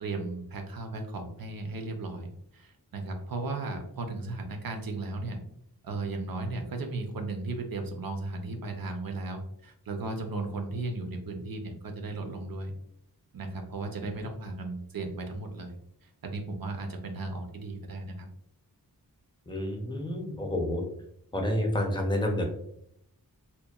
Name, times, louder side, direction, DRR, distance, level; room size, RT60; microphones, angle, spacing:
voice 1, 0.0-5.4 5.8-12.7 13.3-15.8 16.0-18.3, right 2 dB, 65° right, 4 dB, 0.5 m, -36 dB
voice 2, 19.5-20.8 21.3-22.5, left 1 dB, 10° left, 1 dB, 0.5 m, -29 dB
2.8 x 2.1 x 2.3 m, 0.71 s
wide cardioid pair, 70°, 38 cm